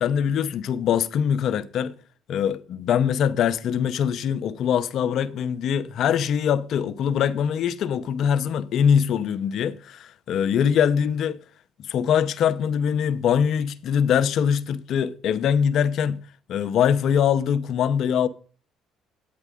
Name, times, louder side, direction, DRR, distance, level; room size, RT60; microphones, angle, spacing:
voice 1, 0.0-1.9 2.3-11.4 11.8-16.2 16.5-18.3, left 8 dB, 65° left, 0.7 m, -23 dB
9.5 x 9.2 x 3.6 m
supercardioid pair, 85°, 0 cm